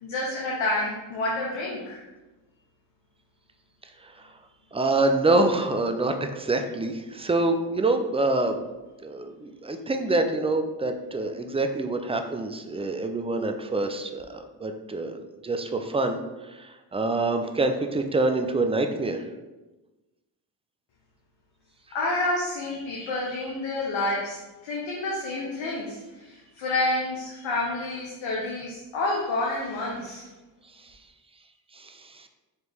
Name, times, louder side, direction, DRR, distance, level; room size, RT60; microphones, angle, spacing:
voice 1, 0.0-2.0 21.9-30.2, left 2 dB, 80° left, -3 dB, 0.8 m, -29 dB
voice 2, 4.7-8.6 9.0-16.2 16.9-19.2 31.8-31.9, right 2 dB, 15° right, 6 dB, 0.4 m, -26 dB
4.4 x 2.9 x 3.4 m, 1.1 s
supercardioid pair, 55°, 46 cm